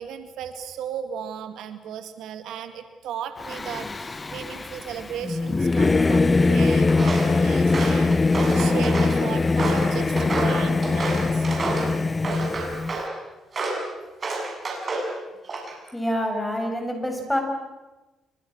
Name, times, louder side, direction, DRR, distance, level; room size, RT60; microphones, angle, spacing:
voice 1, 0.0-11.5, right 8 dB, 85° right, 8 dB, 2.2 m, -36 dB
Singing / Musical instrument, 3.4-13.0, left 3 dB, 25° left, 0.8 m, -22 dB
Walk footsteps, 7.0-7.3 7.7-9.2 9.6-11.9 12.2-13.1 13.5-13.8 14.2-15.1 15.5-15.9, right 2 dB, 40° right, 7.8 m, -29 dB
voice 2, 15.9-17.4, equal, 5° left, 3 dB, 7.1 m, -26 dB
28.5 x 24.0 x 6.5 m, 1.1 s
cardioid pair, 90°, 0 cm